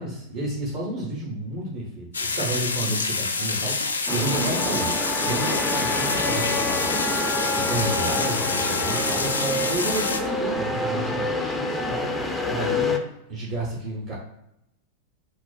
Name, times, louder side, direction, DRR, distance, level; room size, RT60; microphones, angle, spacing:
voice 1, 0.0-13.0 13.3-14.2, right 2 dB, 45° right, -5 dB, 0.8 m, -31 dB
sound 1, 2.1-10.2, left 4 dB, 75° left, 0.3 m, -27 dB
sound 2, 4.1-13.0, left 2 dB, 10° left, 0.4 m, -27 dB
4.2 x 2.1 x 2.4 m, 0.84 s
figure-of-eight pair, 90°, 0 cm